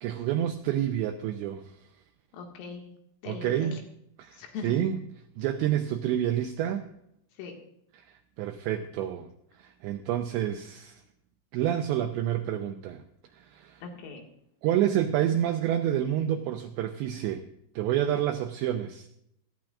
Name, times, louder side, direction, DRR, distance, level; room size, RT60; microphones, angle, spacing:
voice 1, 0.0-1.9 3.3-3.7 4.2-5.0 5.4-6.9 7.9-9.3 9.6-11.0 11.5-13.0 13.3-13.8 14.6-17.4 17.8-19.1, right 11 dB, 90° right, 6 dB, 2.5 m, -29 dB
voice 2, 2.3-2.9 3.2-3.8 4.3-4.8 7.4-7.5 13.8-14.2, left 5 dB, 85° left, 2 dB, 4.7 m, -40 dB
17.5 x 14.0 x 2.5 m, 0.75 s
omnidirectional pair, 5.9 m